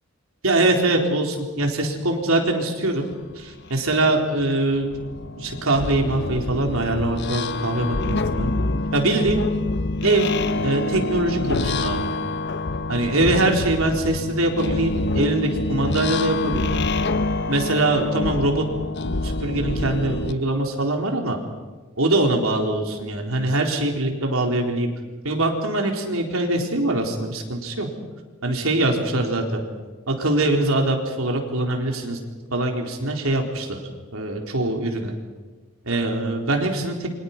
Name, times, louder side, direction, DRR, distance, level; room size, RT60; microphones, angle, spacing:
voice 1, 0.4-3.0 3.4-5.0 5.4-8.5 8.9-9.4 10.0-10.3 10.6-12.0 12.9-16.8 17.5-18.6 19.2-21.4 22.0-24.9 25.2-27.9 28.4-29.6 30.1-32.2 32.5-33.8 34.1-35.1 35.8-37.1, right 2 dB, 80° right, 2 dB, 4.1 m, -23 dB
sound 1, 3.3-3.4 3.8-20.3, left 2 dB, 55° left, 0.9 m, -26 dB
29.0 x 25.0 x 5.6 m, 1.3 s
head